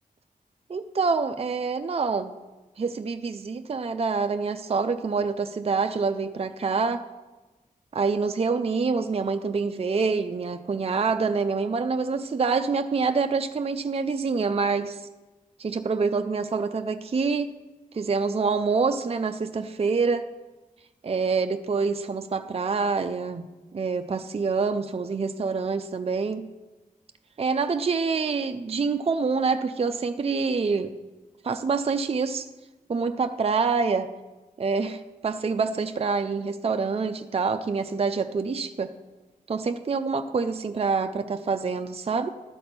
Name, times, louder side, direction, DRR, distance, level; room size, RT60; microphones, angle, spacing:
voice 1, 0.7-2.3 2.8-7.0 7.9-15.1 15.6-17.5 17.9-20.3 21.0-23.5 23.7-26.5 27.4-30.9 31.4-32.5 32.9-34.1 34.6-38.9 39.5-42.3, right 4 dB, 40° right, 8 dB, 0.5 m, -26 dB
12.5 x 4.3 x 6.8 m, 1.2 s
cardioid pair, 55°, 15 cm